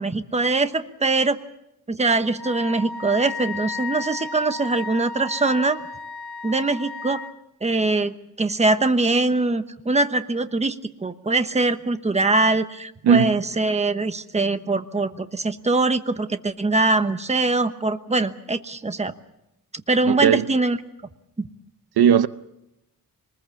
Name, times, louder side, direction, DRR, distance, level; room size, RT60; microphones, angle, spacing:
voice 1, 0.0-1.4 1.9-5.8 6.4-7.2 7.6-10.7 11.0-19.1 19.9-20.8 21.4-21.5, right 3 dB, 15° right, 1.1 m, -22 dB
Wind instrument woodwind instrument, 2.4-7.3, left 4 dB, 85° left, 1.4 m, -34 dB
voice 2, 13.0-13.4 20.1-20.5 22.0-22.3, right 8 dB, 80° right, 0.8 m, -17 dB
26.0 x 20.5 x 7.1 m
wide cardioid pair, 140°, 38 cm